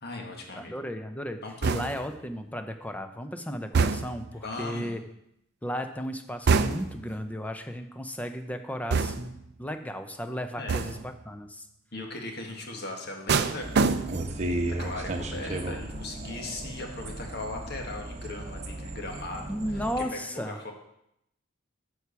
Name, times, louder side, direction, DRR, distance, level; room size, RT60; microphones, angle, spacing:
voice 1, 0.0-0.7 1.4-1.7 4.4-5.0 10.6-10.8 11.9-14.2 14.8-19.6 20.1-20.7, left 2 dB, 55° left, 2 dB, 1.6 m, -38 dB
voice 2, 0.5-1.4 1.7-5.0 5.6-11.7 19.5-20.6, equal, 5° left, 7 dB, 0.6 m, -35 dB
sound 1, 1.6-2.2 3.7-4.3 6.5-7.1 8.9-9.5 10.7-11.1 13.3-14.4 14.8-15.2, right 4 dB, 55° right, 0.5 m, -26 dB
sound 2, 13.6-20.0, right 1 dB, 35° right, 1.0 m, -35 dB
9.3 x 4.8 x 7.0 m, 0.79 s
head